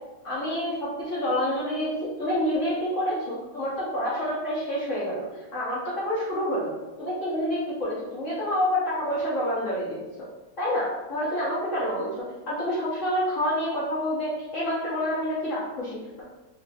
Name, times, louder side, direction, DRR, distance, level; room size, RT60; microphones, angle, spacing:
voice 1, 0.2-5.3 5.5-6.7 7.0-10.0 10.6-16.2, equal, 70° left, -7 dB, 0.7 m, -28 dB
3.4 x 2.5 x 2.4 m, 1.1 s
omnidirectional pair, 2.1 m